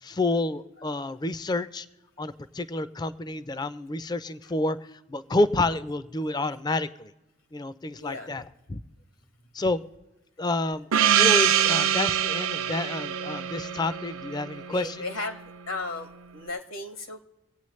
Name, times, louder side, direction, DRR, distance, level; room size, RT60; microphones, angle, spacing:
voice 1, 0.0-1.9 2.2-4.8 5.1-7.1 7.5-8.4 8.7-8.8 9.5-9.8 10.4-10.9 11.2-15.0, left 2 dB, 20° left, 14 dB, 0.4 m, -29 dB
voice 2, 7.9-8.3 14.7-17.2, left 2 dB, 80° left, 6 dB, 1.5 m, -36 dB
Gong, 10.9-15.2, right 10 dB, 80° right, 0.5 m, -24 dB
25.0 x 8.7 x 3.2 m, 1.0 s
head